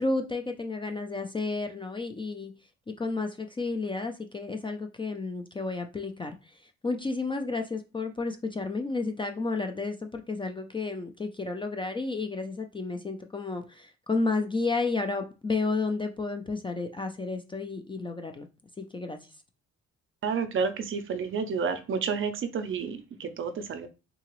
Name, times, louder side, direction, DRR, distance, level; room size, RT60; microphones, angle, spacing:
voice 1, 0.0-2.5 2.9-18.5 18.8-19.3, left 3 dB, 20° left, 5 dB, 0.3 m, -32 dB
voice 2, 20.2-23.9, right 5 dB, 45° right, 10 dB, 0.5 m, -30 dB
3.7 x 2.8 x 3.0 m, 0.30 s
cardioid pair, 150°, 29 cm